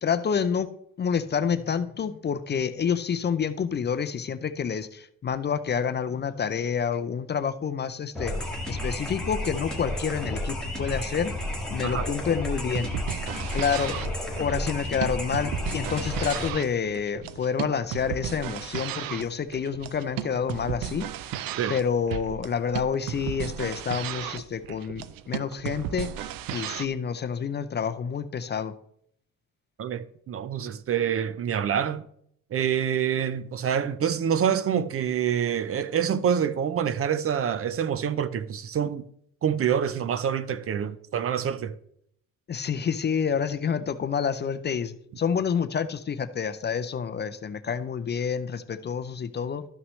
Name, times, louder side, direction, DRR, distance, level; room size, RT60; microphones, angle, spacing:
voice 1, 0.0-8.3 8.7-11.3 11.7-12.9 13.5-14.0 14.4-21.3 21.7-28.8 42.5-49.6, left 7 dB, 30° left, 0.4 m, -28 dB
sound 1, 8.1-16.5, left 1 dB, ahead, 1.8 m, -32 dB
sound 2, 12.6-26.9, right 11 dB, 90° right, 0.6 m, -35 dB
voice 2, 29.8-32.1 32.5-39.1 39.4-41.7, right 8 dB, 45° right, 0.5 m, -26 dB
12.5 x 5.9 x 3.1 m
cardioid pair, 120°, 33 cm